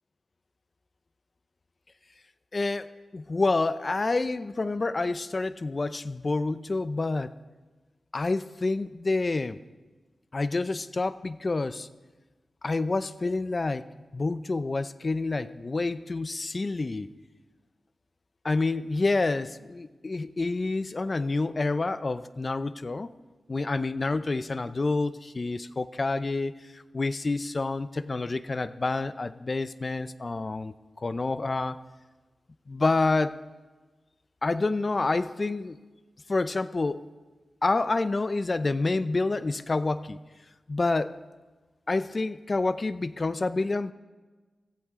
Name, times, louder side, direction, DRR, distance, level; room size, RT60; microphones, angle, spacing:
voice 1, 2.5-7.3 8.1-9.6 10.3-11.9 12.6-13.9 14.1-17.1 18.4-23.1 23.5-30.7 31.0-31.8 32.7-33.4 34.4-35.8 36.3-37.1 37.6-40.2 40.7-41.2 41.9-43.9, left 3 dB, 40° left, 13 dB, 0.6 m, -28 dB
24.5 x 15.0 x 3.7 m, 1.3 s
wide cardioid pair, 75°, 0 cm